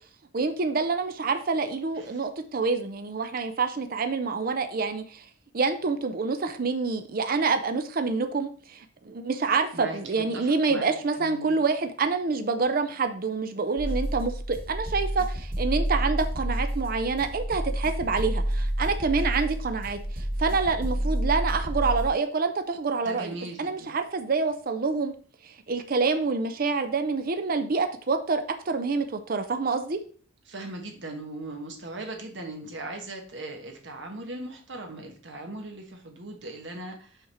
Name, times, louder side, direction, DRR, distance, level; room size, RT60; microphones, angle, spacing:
voice 1, 0.3-5.3 5.5-25.1 25.4-30.0, right 4 dB, 45° right, 8 dB, 0.5 m, -27 dB
voice 2, 9.7-10.9 11.2-11.6 23.0-23.9 30.5-37.3, right 2 dB, 60° right, 3 dB, 1.3 m, -39 dB
sound 1, 13.8-22.1, right 1 dB, 80° right, 2.3 m, -29 dB
5.7 x 5.2 x 4.3 m, 0.44 s
head